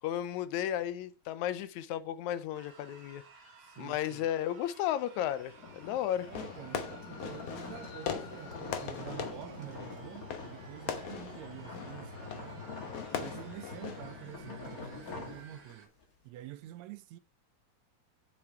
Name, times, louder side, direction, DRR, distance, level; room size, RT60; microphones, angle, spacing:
voice 1, 0.0-3.2 3.8-6.3, left 11 dB, 80° left, 2.0 m, -34 dB
sound 1, 2.5-15.9, right 5 dB, 40° right, 1.8 m, -57 dB
voice 2, 3.6-4.3 6.2-12.7 13.2-15.9 16.2-17.2, right 14 dB, 80° right, 1.8 m, -47 dB
sound 2, 5.1-16.0, left 4 dB, 35° left, 1.8 m, -46 dB
Fireworks, 6.3-14.4, left 7 dB, 65° left, 2.0 m, -41 dB
7.8 x 6.1 x 4.6 m
omnidirectional pair, 3.4 m